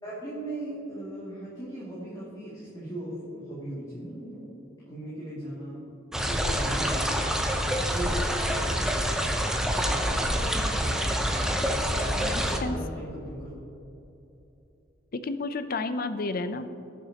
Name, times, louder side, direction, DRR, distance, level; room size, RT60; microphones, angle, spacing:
voice 1, 0.0-4.5 4.9-5.8 6.1-7.5 7.9-8.5 9.8-11.1 11.4-13.5, right 1 dB, 20° left, -9 dB, 2.5 m, -38 dB
sound 1, 6.1-12.6, equal, 5° right, 0.8 m, -27 dB
voice 2, 12.6-13.0 15.1-16.7, left 3 dB, 50° left, 10 dB, 0.6 m, -31 dB
17.5 x 7.2 x 2.9 m, 2.9 s
head